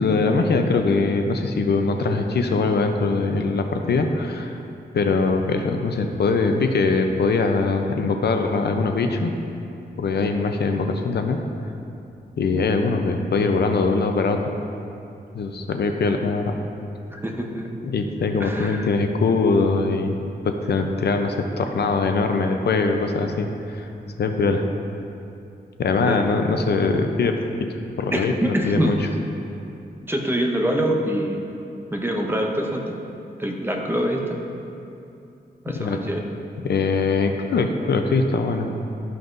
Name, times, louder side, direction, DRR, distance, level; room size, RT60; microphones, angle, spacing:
voice 1, 0.0-4.6 4.9-9.3 10.0-11.4 12.4-14.4 15.3-16.6 17.8-20.2 20.4-23.9 24.2-24.7 25.8-27.7 28.0-29.1 35.7-36.0 36.6-38.7, left 4 dB, 70° left, 5 dB, 0.6 m, -22 dB
voice 2, 17.1-17.7 18.4-18.9 26.1-26.2 28.1-29.0 30.1-31.5 31.9-32.9 33.4-34.4 35.6-36.2, equal, 15° right, 0 dB, 0.8 m, -25 dB
12.5 x 5.8 x 2.6 m, 2.7 s
wide cardioid pair, 105°, 18 cm